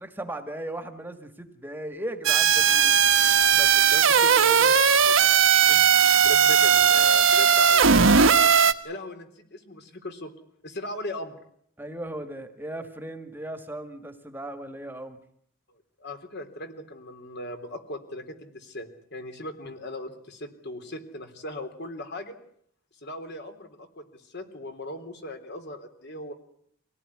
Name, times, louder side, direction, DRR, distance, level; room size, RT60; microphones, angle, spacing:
voice 1, 0.0-3.0 11.8-15.2, right 1 dB, 10° right, 8 dB, 1.7 m, -37 dB
sound 1, 2.2-8.7, right 7 dB, 70° right, 1.4 m, -18 dB
voice 2, 3.5-5.3 5.7-6.0 6.2-8.6 8.8-10.3 10.6-11.4 16.0-22.3 23.0-26.3, left 1 dB, 55° left, 7 dB, 3.6 m, -38 dB
25.0 x 18.0 x 9.9 m, 0.67 s
head